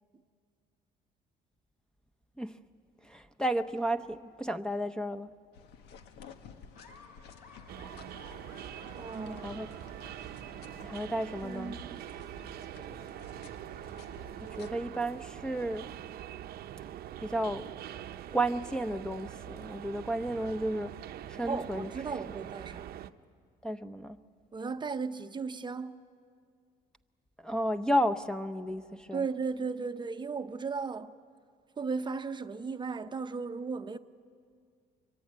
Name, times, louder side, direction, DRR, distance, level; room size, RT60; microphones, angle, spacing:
voice 1, 3.1-5.3 9.3-9.7 10.8-11.8 14.6-15.9 17.2-17.7 18.3-20.9 21.3-21.9 23.6-24.2 27.4-29.2, right 1 dB, 5° left, 0.8 m, -32 dB
sound 1, 5.5-14.7, left 6 dB, 85° left, 1.4 m, -53 dB
Laughter, 6.7-10.8, left 3 dB, 55° left, 4.4 m, -56 dB
sound 2, 7.7-23.1, right 11 dB, 65° right, 0.8 m, -44 dB
voice 2, 9.0-9.5 11.4-12.0 21.4-23.0 24.5-26.0 29.1-31.1 31.8-34.0, right 5 dB, 25° right, 0.8 m, -36 dB
25.0 x 23.5 x 9.5 m
cardioid pair, 110°, 17 cm